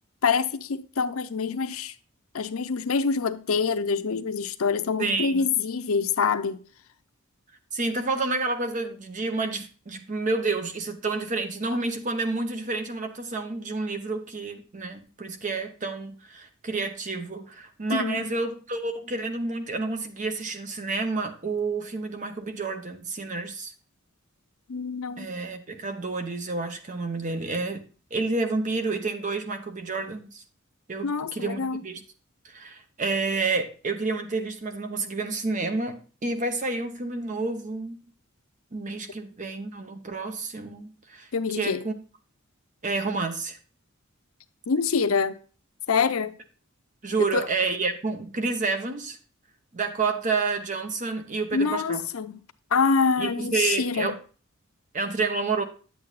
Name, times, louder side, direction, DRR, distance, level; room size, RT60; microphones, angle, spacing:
voice 1, 0.2-1.9 2.3-6.6 17.9-18.3 24.7-25.3 31.0-31.8 41.3-41.8 44.7-45.4 45.9-46.3 47.3-47.4 51.5-52.4 52.7-54.1, left 5 dB, 85° left, 0.6 m, -25 dB
voice 2, 5.0-5.4 7.7-23.7 25.2-27.8 28.1-30.4 30.9-32.0 32.4-38.0 38.7-41.9 42.8-43.6 47.0-49.2 49.7-52.1 53.2-54.2 54.9-55.6, right 3 dB, 35° right, 0.8 m, -29 dB
9.5 x 8.1 x 2.4 m
head